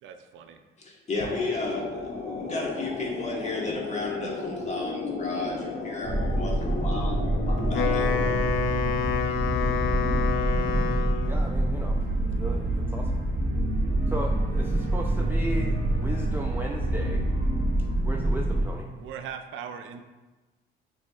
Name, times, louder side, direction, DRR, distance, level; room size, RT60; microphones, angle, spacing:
voice 1, 0.0-0.6 19.0-20.0, right 7 dB, 80° right, 7 dB, 0.4 m, -39 dB
voice 2, 0.8-8.2, left 2 dB, 35° left, -2 dB, 1.2 m, -34 dB
sound 1, 1.2-8.4, left 4 dB, 55° left, 1.1 m, -34 dB
sound 2, 6.0-18.6, right 1 dB, 45° right, 1.5 m, -26 dB
Wind instrument woodwind instrument, 7.6-11.4, left 7 dB, 75° left, 0.4 m, -28 dB
voice 3, 11.2-12.1 12.4-13.3 14.1-17.3 18.0-18.9, right 1 dB, 10° right, 0 dB, 0.3 m, -36 dB
6.7 x 3.1 x 2.3 m, 1.2 s
cardioid pair, 90°, 20 cm